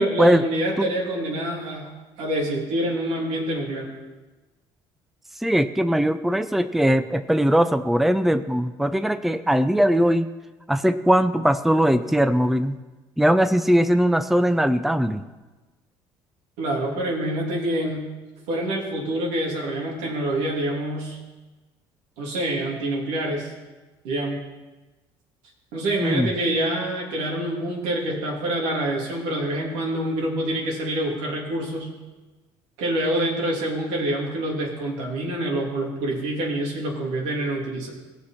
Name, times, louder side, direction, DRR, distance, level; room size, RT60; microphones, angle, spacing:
voice 1, 0.0-1.9 2.2-3.9 16.6-18.1 18.5-21.2 22.2-23.5 24.0-24.4 25.7-31.9 32.8-37.9, right 1 dB, 90° right, -2 dB, 2.9 m, -26 dB
voice 2, 5.4-10.3 10.7-12.8 13.2-15.2 26.0-26.3 28.1-28.2, equal, ahead, 10 dB, 0.6 m, -20 dB
17.5 x 6.1 x 5.7 m, 1.2 s
supercardioid pair, 90°, 10 cm